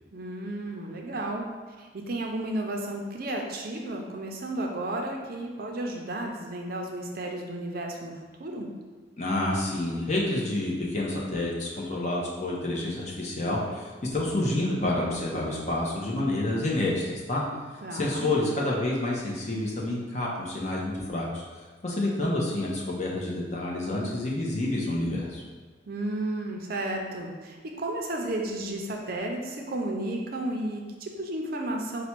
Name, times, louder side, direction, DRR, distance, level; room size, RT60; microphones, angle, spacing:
voice 1, 0.1-1.5 1.8-8.7 17.8-18.3 25.9-32.0, right 1 dB, 50° right, 1 dB, 0.5 m, -33 dB
voice 2, 9.2-17.4 17.9-21.4 21.8-25.4, left 1 dB, 35° left, -3 dB, 0.7 m, -28 dB
4.2 x 2.2 x 4.4 m, 1.4 s
head